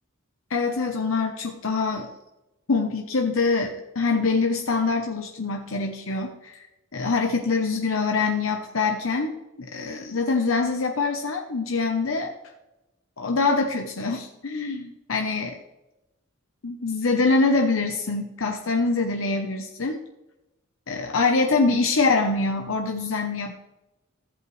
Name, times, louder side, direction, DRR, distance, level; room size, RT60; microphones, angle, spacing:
voice 1, 0.5-2.1 2.7-6.7 6.9-12.3 13.2-15.6 16.6-20.0 20.9-23.5, left 3 dB, 80° left, 3 dB, 0.9 m, -24 dB
14.5 x 7.8 x 3.2 m, 0.96 s
head